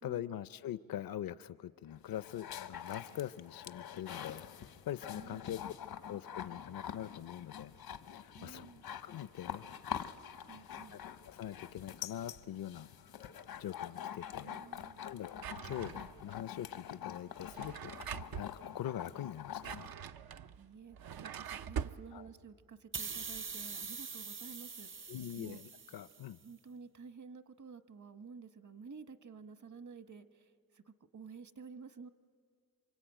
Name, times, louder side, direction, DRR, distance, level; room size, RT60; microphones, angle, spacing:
voice 1, 0.0-5.6 6.1-7.7 8.1-8.6 9.0-9.7 10.9-13.1 13.6-14.5 15.0-17.9 18.3-19.8 22.1-22.3 25.1-26.4, left 11 dB, 70° left, 15 dB, 0.6 m, -43 dB
sound 1, 1.9-19.9, left 9 dB, 85° left, 1.1 m, -46 dB
voice 2, 5.1-5.5 8.4-8.9 10.5-11.0 14.4-15.0 20.5-25.6 26.4-32.1, right 5 dB, 55° right, 11 dB, 1.3 m, -52 dB
Drawer open or close, 15.4-16.3 17.4-18.5 19.4-22.0, right 8 dB, 75° right, 0.7 m, -43 dB
sound 2, 22.9-26.3, right 5 dB, 35° right, 0.7 m, -44 dB
27.0 x 24.5 x 9.0 m, 2.2 s
cardioid pair, 65°, 36 cm